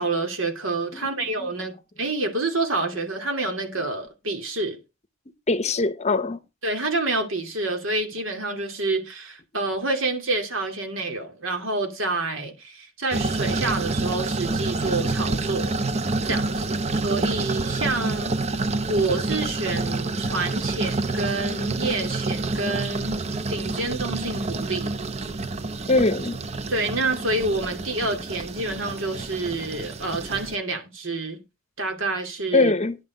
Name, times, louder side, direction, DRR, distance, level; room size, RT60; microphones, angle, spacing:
voice 1, 0.0-4.8 6.6-15.7 16.2-18.4 18.9-23.2 23.5-24.9 25.2-25.3 26.7-31.4 31.8-32.7, right 2 dB, 75° right, 2.7 m, -28 dB
voice 2, 5.5-6.4 25.9-26.4 32.5-33.0, left 3 dB, 35° left, 0.8 m, -22 dB
sound 1, 13.1-30.5, right 3 dB, 30° right, 0.6 m, -28 dB
10.5 x 5.7 x 5.3 m
head